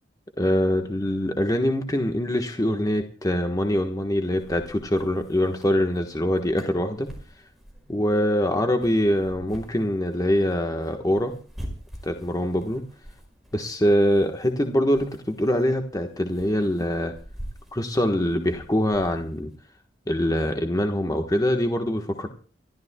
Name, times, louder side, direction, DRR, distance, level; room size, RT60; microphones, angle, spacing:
voice 1, 0.4-7.1 7.9-11.3 12.0-12.8 13.5-17.1 17.7-19.5 20.1-22.3, equal, 20° left, 4 dB, 1.3 m, -24 dB
sound 1, 4.3-19.6, equal, ahead, 5.2 m, -45 dB
29.0 x 13.0 x 2.3 m, 0.41 s
head